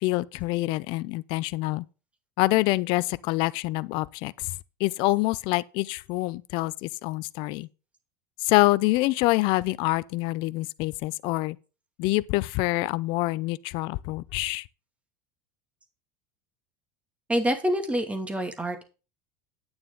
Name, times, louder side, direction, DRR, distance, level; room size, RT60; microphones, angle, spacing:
voice 1, 0.0-1.8 2.4-4.5 4.8-7.7 8.4-11.6 12.0-14.7, left 21 dB, 60° left, 0.5 m, -26 dB
voice 2, 17.3-18.8, equal, 15° right, 2.3 m, -26 dB
9.7 x 8.8 x 3.9 m
hypercardioid pair, 90°, 10 cm